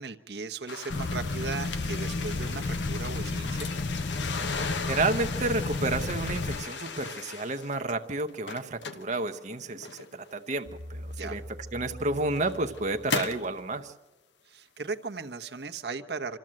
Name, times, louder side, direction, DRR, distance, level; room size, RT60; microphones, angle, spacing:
voice 1, 0.0-3.7 11.1-11.4 14.5-16.4, right 4 dB, 65° right, 7 dB, 1.0 m, -37 dB
sound 1, 0.7-7.9 8.3-10.3 11.2-11.3 12.0-13.5, left 5 dB, 85° left, 1.0 m, -37 dB
sound 2, 0.9-6.6, left 3 dB, 45° left, 0.6 m, -32 dB
voice 2, 4.8-11.4 11.7-13.9, right 2 dB, 40° right, 6 dB, 0.8 m, -31 dB
sound 3, 10.7-13.8, equal, 85° right, 1.3 m, -44 dB
26.5 x 13.5 x 7.6 m, 1.2 s
head